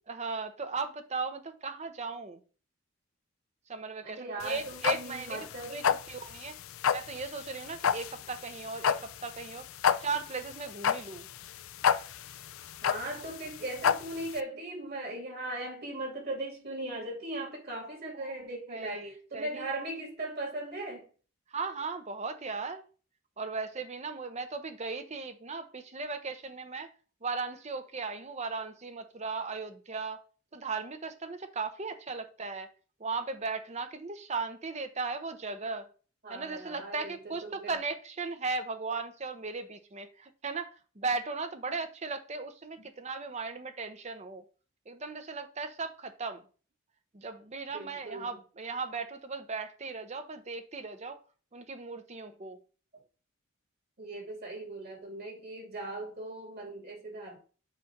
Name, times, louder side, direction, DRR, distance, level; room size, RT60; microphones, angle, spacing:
voice 1, 0.1-2.4 3.7-6.6 6.9-9.7 10.0-11.3 18.2-18.4 18.7-19.7 21.5-22.8 23.4-26.9 27.2-30.2 30.5-32.7 33.0-35.9 36.3-44.4 44.9-46.4 47.1-51.2 51.5-52.6, right 4 dB, 30° right, 0.8 m, -37 dB
voice 2, 4.0-5.8 12.8-21.1 36.2-37.8 42.8-42.9 47.7-48.3 52.9-53.0 54.0-57.4, right 2 dB, 50° right, 2.3 m, -39 dB
sound 1, 4.4-14.4, left 7 dB, 75° left, 0.4 m, -30 dB
8.1 x 2.7 x 5.8 m
head